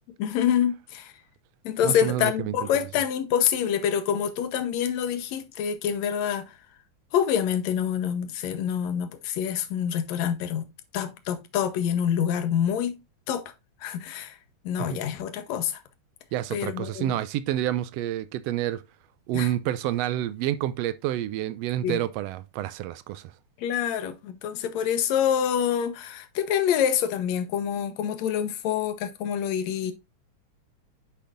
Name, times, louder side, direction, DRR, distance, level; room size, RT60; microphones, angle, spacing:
voice 1, 0.2-1.1 1.7-6.6 7.1-10.7 10.9-13.0 13.3-13.4 13.8-14.4 14.7-15.8 16.5-17.2 19.3-19.5 21.8-22.0 23.6-29.9, left 9 dB, 70° left, 2.2 m, -26 dB
voice 2, 1.8-2.5 14.9-15.0 16.3-18.8 19.3-23.3, right 12 dB, 85° right, 1.4 m, -28 dB
10.0 x 5.2 x 2.5 m
omnidirectional pair, 3.4 m